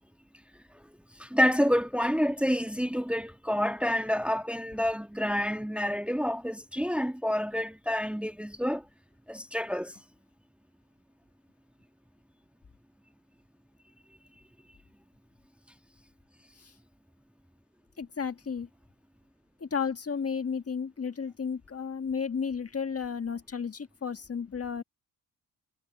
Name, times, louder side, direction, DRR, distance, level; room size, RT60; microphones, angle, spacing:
voice 1, 1.2-8.8 9.3-9.9, equal, 5° right, 1.4 m, -28 dB
voice 2, 18.0-18.7 19.6-24.8, left 6 dB, 35° left, 1.6 m, -33 dB
cardioid pair, 70°, 41 cm